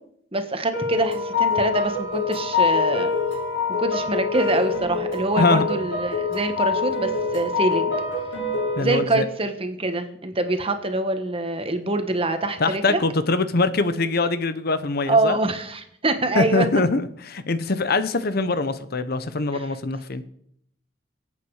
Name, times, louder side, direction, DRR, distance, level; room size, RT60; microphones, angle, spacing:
voice 1, 0.3-3.1 3.8-8.0 8.8-13.0 15.1-16.7 19.5-19.6, right 2 dB, 30° right, 7 dB, 1.4 m, -25 dB
sound 1, 0.7-8.8, left 4 dB, 80° left, 6.2 m, -25 dB
voice 2, 8.8-9.3 12.6-15.4 16.3-17.0 17.3-20.2, left 3 dB, 55° left, 13 dB, 0.9 m, -23 dB
23.5 x 8.6 x 4.9 m, 0.71 s
head